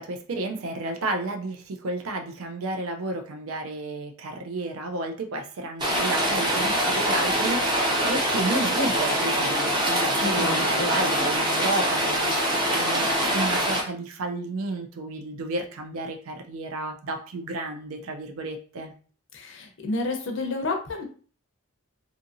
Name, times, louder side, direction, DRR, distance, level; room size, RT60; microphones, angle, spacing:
voice 1, 0.0-12.4 12.7-13.1 13.3-18.9, right 2 dB, 80° right, 5 dB, 0.4 m, -32 dB
Rain, 5.8-13.8, equal, 20° right, 0.5 m, -24 dB
voice 2, 10.2-11.0 19.3-21.0, left 2 dB, 60° left, 4 dB, 0.5 m, -30 dB
2.7 x 2.5 x 2.5 m, 0.41 s
head